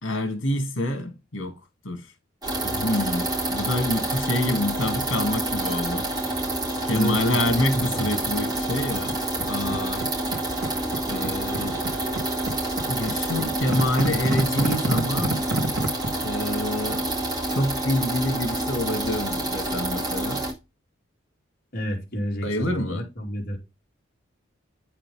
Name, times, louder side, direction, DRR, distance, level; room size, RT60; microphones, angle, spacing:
voice 1, 0.0-1.5 1.8-2.0 2.6-6.1 6.8-9.2 9.5-10.1 11.1-11.8 12.9-15.4 16.2-17.0 17.5-20.4 22.4-23.0, left 1 dB, 80° left, 2.2 m, -27 dB
sound 1, 2.4-20.5, right 2 dB, 20° right, 4.0 m, -28 dB
voice 2, 6.9-8.1 21.7-23.6, equal, 50° left, 2.7 m, -30 dB
sound 2, 9.0-10.0 10.3-16.1, right 2 dB, 65° right, 2.1 m, -30 dB
9.2 x 5.7 x 3.5 m
head